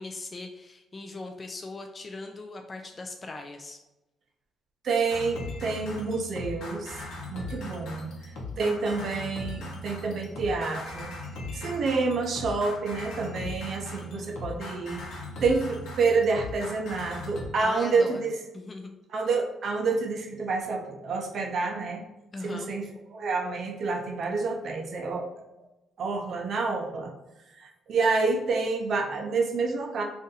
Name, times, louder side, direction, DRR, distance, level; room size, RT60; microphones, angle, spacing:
voice 1, 0.0-3.8 13.9-14.4 17.6-18.9 22.3-22.7, left 2 dB, 30° left, 4 dB, 0.3 m, -40 dB
voice 2, 4.8-7.0 7.3-8.1 8.6-11.1 11.5-15.0 15.4-18.3 19.1-22.0 22.4-22.8 23.1-25.3 26.0-27.1 27.6-30.0, right 4 dB, 60° right, 2 dB, 0.6 m, -28 dB
sound 1, 5.1-17.5, left 2 dB, 80° left, 0.7 m, -39 dB
2.6 x 2.6 x 3.9 m, 1.0 s
cardioid pair, 90°, 0 cm